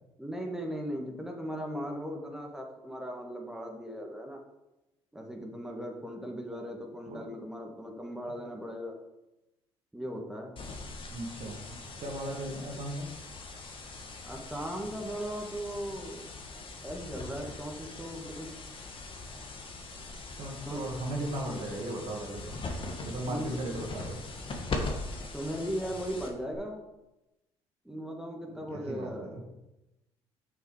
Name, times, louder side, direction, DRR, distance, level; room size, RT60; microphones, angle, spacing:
voice 1, 0.2-4.4 5.1-9.0 9.9-10.6 14.2-16.2 16.8-18.5 20.6-20.8 23.3-23.6 25.3-26.8 27.8-29.3, equal, 5° right, 1 dB, 1.6 m, -38 dB
sound 1, 10.6-26.6, left 3 dB, 45° left, 1.5 m, -41 dB
voice 2, 11.1-13.2 20.4-22.6 23.0-24.2 28.5-29.4, right 1 dB, 60° right, 1 dB, 1.8 m, -37 dB
6.5 x 5.8 x 4.9 m, 0.95 s
hypercardioid pair, 55°, 12 cm